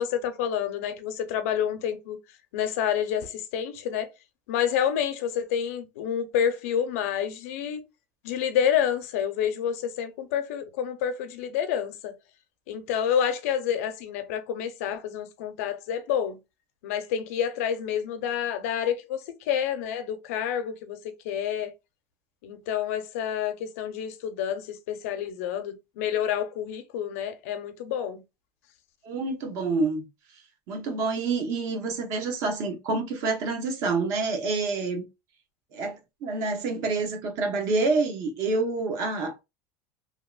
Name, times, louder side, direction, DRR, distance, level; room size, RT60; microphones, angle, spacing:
voice 1, 0.0-2.2 2.5-4.1 4.5-7.8 8.2-12.1 12.7-16.4 16.8-21.0 21.2-21.7 22.4-28.2, left 9 dB, 85° left, 0.6 m, -28 dB
voice 2, 29.0-30.1 30.7-35.1 35.7-39.4, right 3 dB, 45° right, 0.9 m, -27 dB
2.9 x 2.8 x 2.3 m
cardioid pair, 175°, 8 cm